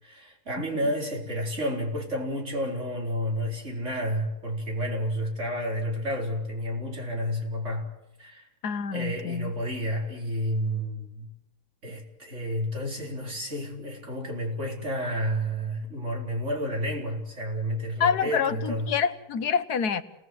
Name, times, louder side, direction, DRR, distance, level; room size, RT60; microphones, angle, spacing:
voice 1, 0.0-7.9 8.2-8.5 8.9-11.3 11.8-18.9, equal, 50° right, 0 dB, 4.6 m, -30 dB
voice 2, 8.6-9.5 18.0-20.0, left 6 dB, 85° left, 12 dB, 1.7 m, -27 dB
29.0 x 19.0 x 7.8 m, 0.90 s
omnidirectional pair, 1.6 m